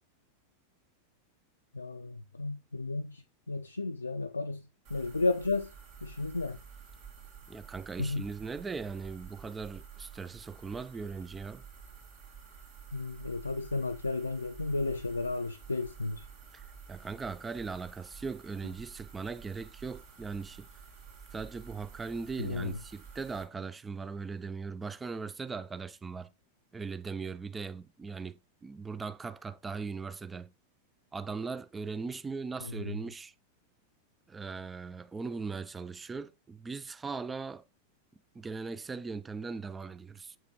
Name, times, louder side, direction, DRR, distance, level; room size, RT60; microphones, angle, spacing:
voice 1, 1.7-4.6 4.9-5.7 6.0-6.6 8.0-8.3 12.9-16.2 22.4-22.8 32.6-33.0, left 3 dB, 80° left, 0.4 m, -33 dB
sound 1, 4.8-23.4, right 6 dB, 45° right, 1.4 m, -51 dB
voice 2, 7.5-11.6 16.5-16.6 16.9-20.7 21.3-26.3 26.7-30.5 31.1-33.3 34.3-37.6 38.4-40.4, right 4 dB, 15° right, 0.3 m, -39 dB
7.4 x 4.6 x 2.9 m
figure-of-eight pair, 90°, 0 cm